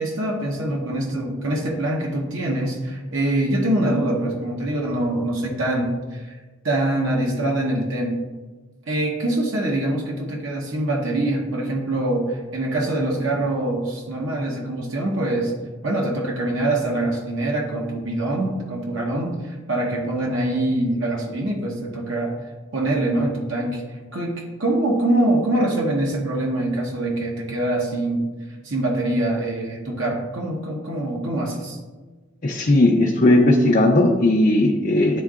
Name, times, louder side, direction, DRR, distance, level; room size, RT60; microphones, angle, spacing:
voice 1, 0.0-6.4 6.6-8.2 8.9-15.5 15.8-22.3 22.7-23.8 24.1-28.3 28.6-31.8, right 1 dB, 65° right, -1 dB, 1.0 m, -24 dB
voice 2, 32.4-35.2, left 1 dB, 40° left, -1 dB, 0.5 m, -17 dB
11.0 x 3.7 x 2.4 m, 1.3 s
head